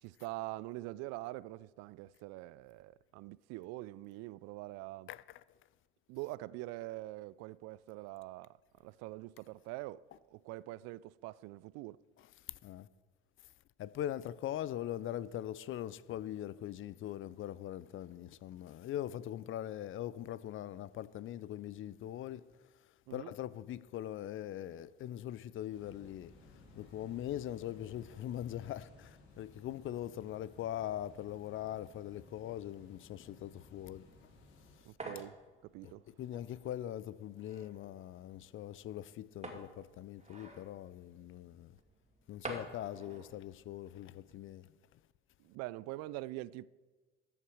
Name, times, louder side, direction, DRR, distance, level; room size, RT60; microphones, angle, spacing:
voice 1, 0.0-5.1 6.1-12.0 23.1-23.3 34.9-35.4 35.6-36.1 45.4-46.7, right 18 dB, 60° right, 0.4 m, -44 dB
voice 2, 13.8-22.4 23.1-26.3 26.8-34.0 35.8-35.9 36.2-41.7 42.3-44.7, left 12 dB, 45° left, 0.5 m, -41 dB
sound 1, 25.7-34.8, left 2 dB, 65° left, 2.5 m, -59 dB
sound 2, 34.1-44.5, right 2 dB, 20° right, 2.5 m, -51 dB
14.0 x 8.5 x 4.8 m
hypercardioid pair, 60°, 30 cm